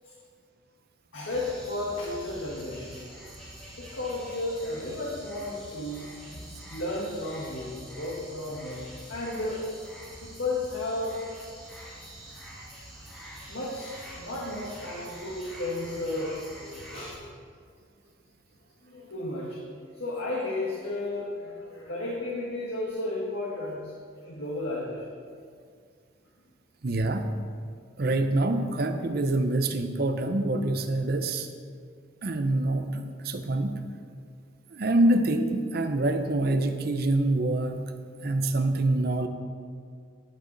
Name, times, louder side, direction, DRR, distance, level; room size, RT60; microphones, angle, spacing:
voice 1, 1.1-3.1 3.8-6.1 6.3-6.4 6.7-9.7 10.2-11.2 13.5-17.2 18.8-25.1, left 2 dB, 75° left, -5 dB, 1.5 m, -33 dB
sound 1, 1.3-17.2, right 1 dB, ahead, 1.8 m, -46 dB
voice 2, 26.8-27.3 28.0-31.5 32.2-33.8 34.7-37.9 38.2-39.3, right 2 dB, 50° right, 8 dB, 0.6 m, -26 dB
10.5 x 8.2 x 3.9 m, 2.1 s
head